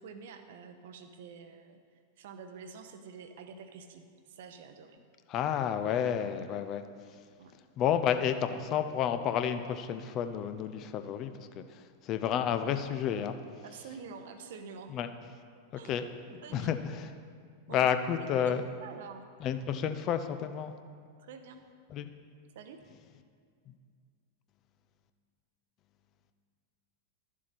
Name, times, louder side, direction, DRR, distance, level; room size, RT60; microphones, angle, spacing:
voice 1, 0.0-1.8 2.2-5.0 7.4-7.5 13.6-15.0 15.7-15.9 16.4-16.7 17.7-17.9 18.2-18.5 18.8-19.2 21.2-21.6 22.5-22.8, right 6 dB, 55° right, 8 dB, 0.7 m, -47 dB
voice 2, 5.3-7.2 7.8-13.4 14.9-15.1 15.8-17.1 17.7-18.7 19.4-20.7 21.9-22.1 23.7-23.8, left 8 dB, 35° left, 9 dB, 0.5 m, -31 dB
12.0 x 7.3 x 4.2 m, 2.1 s
figure-of-eight pair, 90°, 0 cm